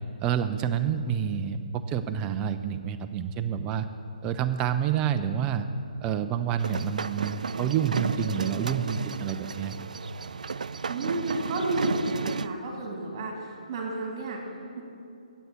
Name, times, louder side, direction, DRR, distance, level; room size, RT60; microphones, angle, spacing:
voice 1, 0.2-3.9 4.2-5.7 6.0-9.7, right 8 dB, 20° right, 8 dB, 0.5 m, -28 dB
sound 1, 6.6-12.5, right 5 dB, 75° right, 0.4 m, -33 dB
voice 2, 10.9-14.4, right 2 dB, 35° right, 0 dB, 3.0 m, -31 dB
9.4 x 8.2 x 8.6 m, 2.6 s
hypercardioid pair, 150°, 4 cm